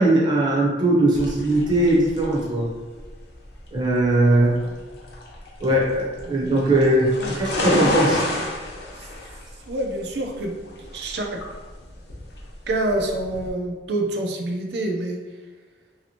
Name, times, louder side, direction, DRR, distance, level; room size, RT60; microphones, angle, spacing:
voice 1, 0.0-2.7 3.7-4.6 5.6-8.2, right 1 dB, 25° right, -5 dB, 0.7 m, -19 dB
sound 1, 1.1-13.5, left 1 dB, 70° left, 0.7 m, -31 dB
voice 2, 6.3-6.6 7.2-8.2 9.7-10.5 10.9-11.4 12.7-15.2, right 1 dB, 65° right, 2 dB, 0.5 m, -27 dB
3.0 x 2.8 x 2.9 m, 1.3 s
head